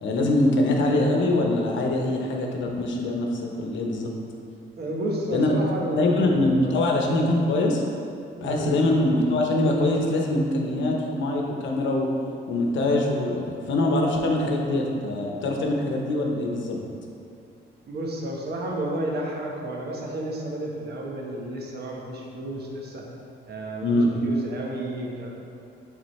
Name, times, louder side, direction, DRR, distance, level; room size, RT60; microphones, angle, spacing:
voice 1, 0.0-4.1 5.3-5.5 6.0-7.8 8.4-12.1 12.5-16.8 23.8-24.1, left 2 dB, 70° left, 1 dB, 0.9 m, -23 dB
voice 2, 4.8-6.8 8.4-8.7 17.9-23.0 23.5-25.3, right 1 dB, 55° right, -2 dB, 1.3 m, -31 dB
9.3 x 3.9 x 3.2 m, 2.5 s
cardioid pair, 90°, 20 cm